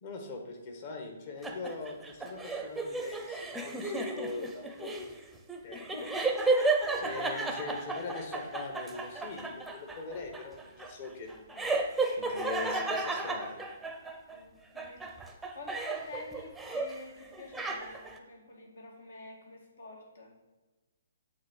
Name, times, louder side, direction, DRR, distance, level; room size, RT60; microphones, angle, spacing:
voice 1, 0.0-5.1 5.6-6.1 6.4-11.9 12.1-13.6, left 4 dB, 45° left, 3 dB, 1.6 m, -42 dB
sound 1, 1.4-14.4 14.8-17.0 17.3-18.2, right 3 dB, 5° right, 0.8 m, -33 dB
voice 2, 14.3-20.3, left 2 dB, 70° left, -1 dB, 2.2 m, -48 dB
8.4 x 3.7 x 6.3 m, 1.2 s
hypercardioid pair, 135°, 0 cm